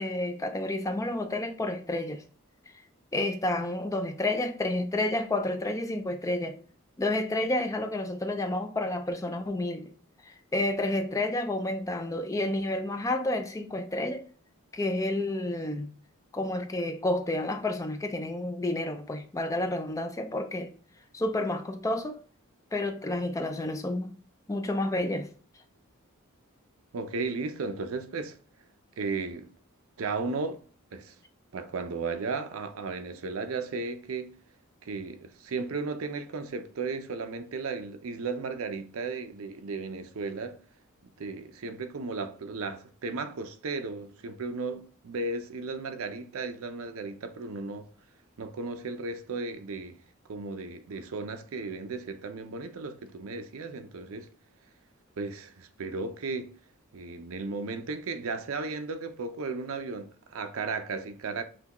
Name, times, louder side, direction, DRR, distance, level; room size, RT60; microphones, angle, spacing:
voice 1, 0.0-2.2 3.1-6.6 7.0-9.9 10.2-14.3 14.7-15.9 16.3-20.7 21.1-22.2 22.7-24.1 24.5-25.3, left 1 dB, 15° left, 0.3 m, -30 dB
voice 2, 26.9-28.4 29.0-29.5 30.0-30.6 30.9-31.2 31.5-34.3 34.8-40.6 41.0-47.9 48.4-50.0 50.3-54.3 55.2-56.5 56.9-61.4, right 4 dB, 70° right, 0.5 m, -35 dB
5.8 x 2.2 x 2.9 m
head